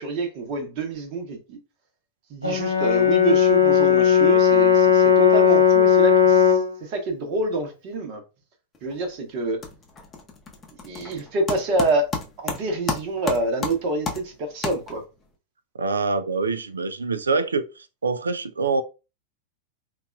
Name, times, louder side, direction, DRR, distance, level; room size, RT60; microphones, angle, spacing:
voice 1, 0.0-1.6 2.3-8.2 8.8-9.6 10.8-12.1 12.4-15.0, right 2 dB, 45° right, 1.0 m, -27 dB
Brass instrument, 2.4-6.7, left 7 dB, 90° left, 0.5 m, -17 dB
sound 1, 8.7-9.1 9.4-15.3, left 4 dB, 20° left, 0.7 m, -33 dB
voice 2, 15.8-17.6 18.0-18.8, right 4 dB, 75° right, 0.3 m, -24 dB
3.9 x 2.4 x 2.2 m
figure-of-eight pair, 90°, 0 cm